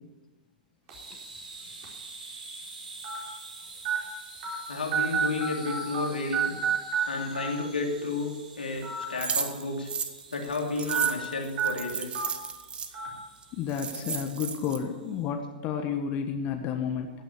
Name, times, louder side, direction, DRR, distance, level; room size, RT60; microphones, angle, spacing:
sound 1, 0.9-1.1 1.8-1.9 3.0-3.2 3.8-4.0 4.4-4.5 4.9-6.1 6.3-7.0 7.3-7.5 8.7-9.0 9.4-9.5 10.9-11.1 11.6-11.7 12.1-12.3 12.9-13.1, right 7 dB, 45° right, 4.2 m, -28 dB
sound 2, 0.9-15.2, right 3 dB, 65° right, 5.8 m, -47 dB
voice 1, 4.7-6.5 7.1-9.9 10.3-12.3, left 3 dB, 85° left, 1 dB, 2.8 m, -32 dB
sound 3, 9.2-12.9 13.4-13.5 13.7-14.8, right 6 dB, 20° right, 1.1 m, -33 dB
voice 2, 13.5-17.1, left 7 dB, 35° left, 5 dB, 1.3 m, -31 dB
15.5 x 9.5 x 6.8 m, 1.2 s
hypercardioid pair, 110°, 5 cm